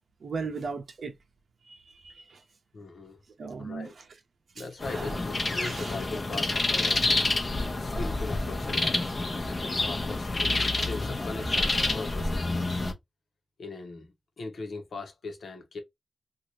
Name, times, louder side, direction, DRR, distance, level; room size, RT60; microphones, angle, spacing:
voice 1, 0.2-1.1 1.7-2.4 3.4-3.9 4.6-5.2 5.6-6.0, right 4 dB, 75° right, 0.7 m, -38 dB
voice 2, 2.7-3.2 3.6-3.9 4.5-7.2 7.8-9.2 9.6-12.8 13.6-15.8, left 3 dB, 75° left, 1.0 m, -40 dB
sound 1, 4.8-12.9, left 2 dB, 35° left, 0.7 m, -28 dB
2.8 x 2.5 x 3.1 m
wide cardioid pair, 95°, 0 cm